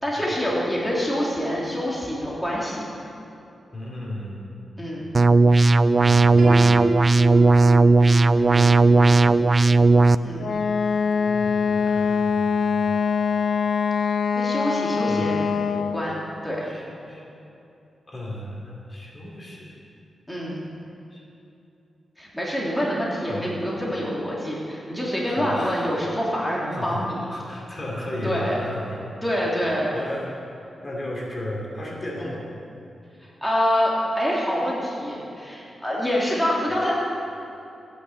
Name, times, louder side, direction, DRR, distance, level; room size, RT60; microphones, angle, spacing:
voice 1, 0.0-2.8 4.8-5.0 10.2-10.5 14.0-15.4 15.7-16.6 20.3-20.6 22.2-27.2 28.2-28.5 29.2-30.0 33.4-36.9, equal, 5° left, -5 dB, 3.2 m, -26 dB
voice 2, 3.7-4.6 8.3-9.5 11.2-13.0 15.1-15.5 16.6-17.2 18.1-19.8 21.1-21.2 23.1-23.5 25.2-25.9 26.7-29.1 29.9-30.3 30.8-32.5, left 1 dB, 30° left, -3 dB, 3.1 m, -34 dB
sound 1, 5.1-10.1, right 3 dB, 35° right, 0.3 m, -16 dB
Piano, 6.4-12.2, equal, 70° right, 2.6 m, -34 dB
Wind instrument woodwind instrument, 10.4-16.1, left 6 dB, 70° left, 0.5 m, -23 dB
16.0 x 10.0 x 8.1 m, 2.8 s
wide cardioid pair, 115°, 0 cm